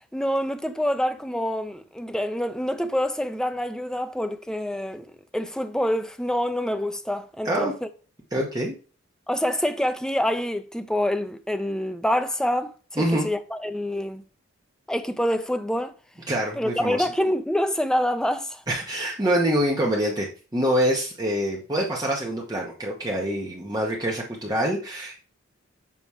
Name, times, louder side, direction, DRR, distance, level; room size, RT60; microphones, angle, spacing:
voice 1, 0.1-7.9 9.3-14.2 14.9-15.9 16.6-18.6, equal, 5° left, 0.5 m, -26 dB
voice 2, 8.3-8.8 13.0-13.3 16.3-17.0 18.7-20.3 20.5-25.3, equal, 20° right, 1.0 m, -25 dB
7.1 x 2.9 x 4.8 m
head